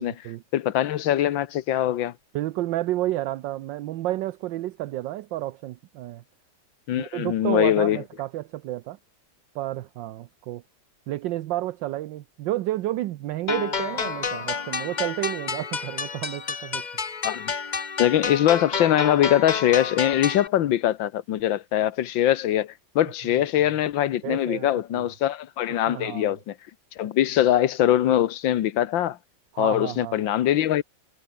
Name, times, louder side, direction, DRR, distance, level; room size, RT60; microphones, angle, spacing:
voice 1, 0.0-0.4 2.3-6.2 7.0-9.0 9.5-10.6 11.1-16.8 24.2-24.7 24.9-25.1 25.9-26.3 29.5-30.3, right 15 dB, 70° right, 1.3 m, -31 dB
voice 2, 0.5-2.1 6.9-8.0 17.2-17.5 18.0-26.5 27.0-29.2 29.6-30.8, left 12 dB, 75° left, 1.7 m, -22 dB
sound 1, 13.5-20.5, left 5 dB, 30° left, 0.8 m, -30 dB
omnidirectional pair, 2.2 m